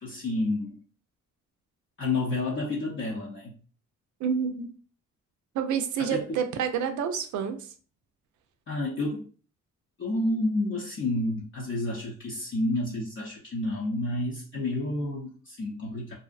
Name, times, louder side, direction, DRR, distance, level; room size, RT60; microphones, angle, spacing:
voice 1, 0.0-0.8 2.0-3.5 6.0-6.4 8.7-9.3 10.0-16.1, left 2 dB, 40° left, -3 dB, 0.6 m, -30 dB
voice 2, 4.2-4.8 5.5-7.7, right 7 dB, 75° right, 7 dB, 0.5 m, -28 dB
2.6 x 2.1 x 2.4 m, 0.40 s
cardioid pair, 90°, 30 cm